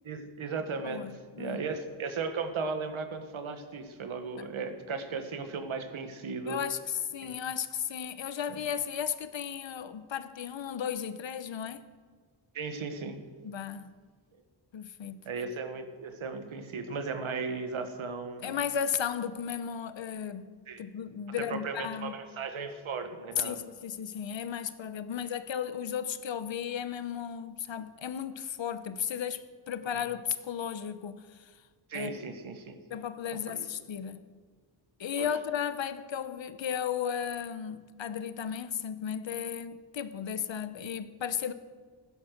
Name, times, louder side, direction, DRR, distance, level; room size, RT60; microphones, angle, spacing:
voice 1, 0.0-1.1 1.4-6.6 7.2-7.3 12.5-13.2 15.2-18.5 20.7-20.8 21.5-23.6 31.9-32.8 33.3-33.7 35.2-35.3, right 4 dB, 90° right, 1.6 m, -36 dB
voice 2, 0.8-1.6 4.4-4.5 6.5-11.9 13.4-13.9 14.7-15.2 18.4-22.1 23.4-31.5 31.9-32.2 32.9-34.2 35.0-41.5, left 8 dB, 70° left, 0.9 m, -35 dB
15.5 x 11.0 x 6.6 m
wide cardioid pair, 120°, 47 cm